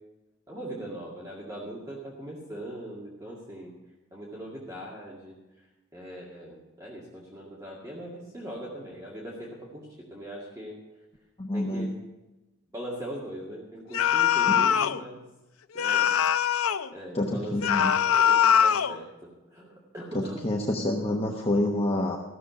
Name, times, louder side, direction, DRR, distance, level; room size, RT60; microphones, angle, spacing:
voice 1, 0.5-3.7 4.1-5.7 5.9-10.8 11.5-11.9 12.7-15.2 15.7-16.2 16.9-20.4, right 1 dB, 15° right, -5 dB, 2.2 m, -40 dB
voice 2, 11.4-11.9 14.5-14.6 17.1-17.9 20.1-22.2, left 1 dB, 30° left, 0 dB, 1.1 m, -27 dB
sound 1, 13.9-15.0 15.8-16.9 17.6-19.0, left 8 dB, 85° left, 0.5 m, -22 dB
15.0 x 7.2 x 8.3 m, 1.1 s
head